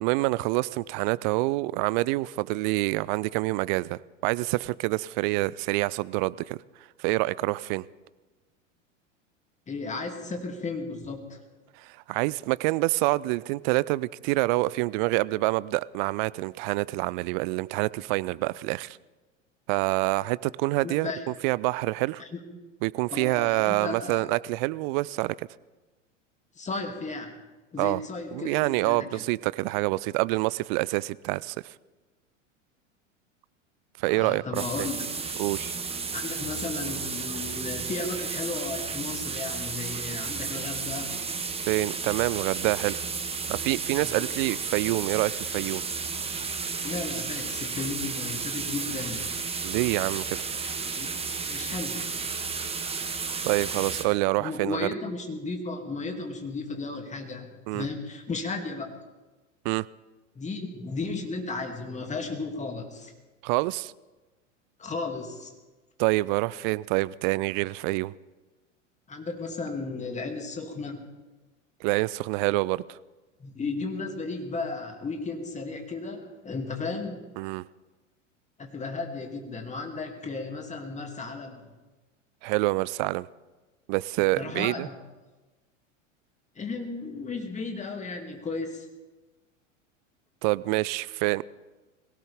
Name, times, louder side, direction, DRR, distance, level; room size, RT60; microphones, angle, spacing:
voice 1, 0.0-6.6 7.0-7.8 11.8-19.0 19.7-22.2 22.8-25.5 27.8-28.0 28.3-31.7 34.0-34.9 35.4-35.7 41.7-43.0 43.5-45.8 49.6-50.5 53.4-54.9 57.7-57.9 59.6-59.9 63.4-63.9 66.0-68.1 71.8-73.0 77.4-77.7 82.4-83.3 83.9-84.9 90.4-91.4, right 21 dB, 40° right, 20 dB, 0.4 m, -27 dB
voice 2, 9.7-11.4 20.8-21.2 22.2-22.4 23.1-24.3 26.6-27.4 27.7-29.2 34.0-35.0 36.1-41.2 44.0-44.3 46.8-49.3 51.0-51.1 51.4-52.0 54.4-59.0 60.3-63.1 64.8-65.5 69.1-71.1 73.4-77.2 78.6-81.6 84.4-84.9 86.6-88.9, left 3 dB, 20° left, 4 dB, 2.6 m, -34 dB
sound 1, 34.5-54.0, right 5 dB, 15° right, 1.4 m, -33 dB
22.5 x 17.0 x 3.6 m, 1.2 s
figure-of-eight pair, 90°, 38 cm